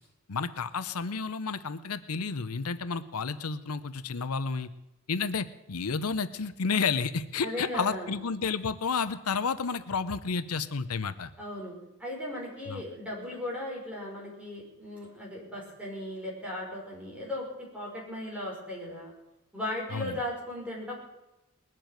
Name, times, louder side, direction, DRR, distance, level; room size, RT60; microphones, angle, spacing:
voice 1, 0.3-4.7 5.1-11.3 12.7-12.8 19.9-20.2, left 5 dB, 90° left, 13 dB, 0.8 m, -31 dB
voice 2, 7.4-8.1 11.4-11.7 12.0-17.4 17.7-19.1 19.5-20.9, left 1 dB, 5° right, -4 dB, 5.6 m, -37 dB
20.5 x 7.7 x 9.1 m, 0.95 s
head